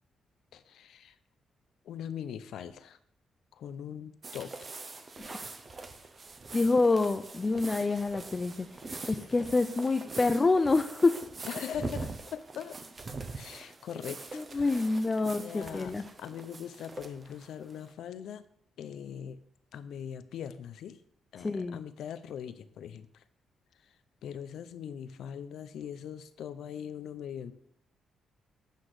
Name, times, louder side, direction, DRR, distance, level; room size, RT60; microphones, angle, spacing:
voice 1, 0.5-1.2 1.8-3.0 3.5-4.8 11.5-12.8 13.3-14.9 15.2-15.9 16.2-18.4 18.8-19.4 19.7-21.0 21.3-23.2 23.8-23.9 24.2-27.5, left 8 dB, 80° left, 13 dB, 0.6 m, -41 dB
sound 1, 4.2-17.9, right 3 dB, 30° right, 0.8 m, -43 dB
voice 2, 6.5-11.2 14.3-16.0 21.4-21.8, left 3 dB, 25° left, 8 dB, 0.4 m, -27 dB
8.3 x 5.9 x 4.9 m, 0.70 s
cardioid pair, 120°, 0 cm